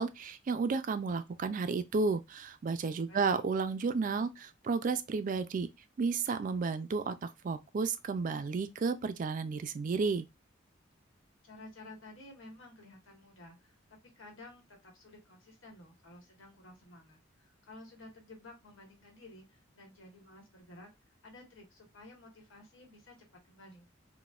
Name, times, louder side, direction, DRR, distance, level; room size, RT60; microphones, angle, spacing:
voice 1, 0.0-5.7 6.0-10.3, right 4 dB, 45° right, 0.3 m, -32 dB
voice 2, 3.1-3.4 11.4-20.9 21.2-23.2 23.4-23.9, left 2 dB, 90° left, 1.3 m, -53 dB
4.0 x 2.1 x 2.4 m
head